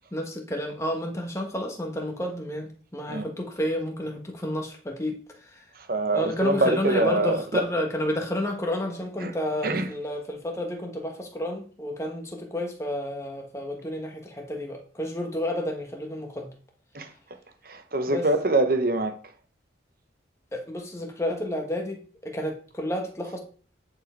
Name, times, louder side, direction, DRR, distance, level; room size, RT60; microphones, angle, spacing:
voice 1, 0.1-5.2 6.1-16.5 18.1-18.3 20.5-23.4, left 1 dB, 15° left, 1.4 m, -30 dB
voice 2, 5.9-7.7 9.2-9.3 9.6-9.9 16.9-17.1 17.7-19.1, right 2 dB, 50° right, 1.0 m, -24 dB
9.6 x 4.6 x 4.6 m
head